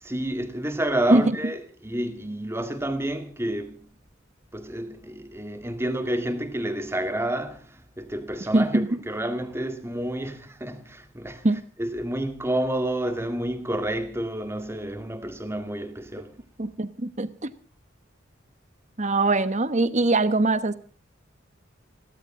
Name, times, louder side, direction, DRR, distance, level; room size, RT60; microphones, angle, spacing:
voice 1, 0.0-3.9 4.5-11.5 11.8-16.4, right 1 dB, 15° right, 1.9 m, -29 dB
voice 2, 8.5-9.0 11.4-11.6 16.6-17.5 19.0-20.7, right 2 dB, 35° right, 1.1 m, -22 dB
29.0 x 13.0 x 3.8 m
head